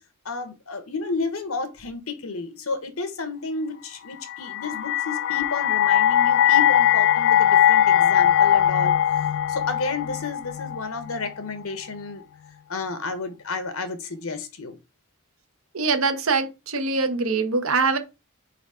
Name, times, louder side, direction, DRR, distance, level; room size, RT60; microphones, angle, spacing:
voice 1, 0.2-8.9 9.5-12.2 12.7-14.8, left 3 dB, 80° left, 1.2 m, -31 dB
sound 1, 4.3-11.4, left 10 dB, 60° left, 0.3 m, -20 dB
voice 2, 15.7-18.0, right 4 dB, 75° right, 1.1 m, -23 dB
5.0 x 4.0 x 4.9 m
head